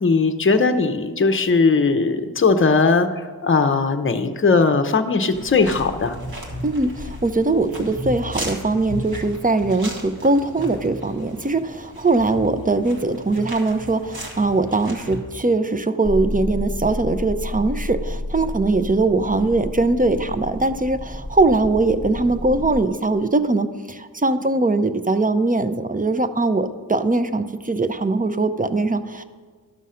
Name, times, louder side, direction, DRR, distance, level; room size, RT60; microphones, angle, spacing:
voice 1, 0.0-6.2, left 4 dB, 35° left, 8 dB, 0.7 m, -19 dB
sound 1, 5.3-15.2, equal, 80° right, 1.6 m, -35 dB
voice 2, 6.6-29.2, right 2 dB, 25° right, 11 dB, 0.5 m, -21 dB
sound 2, 16.0-22.8, left 1 dB, ahead, 1.2 m, -31 dB
12.0 x 6.3 x 5.6 m, 1.5 s
wide cardioid pair, 70°, 36 cm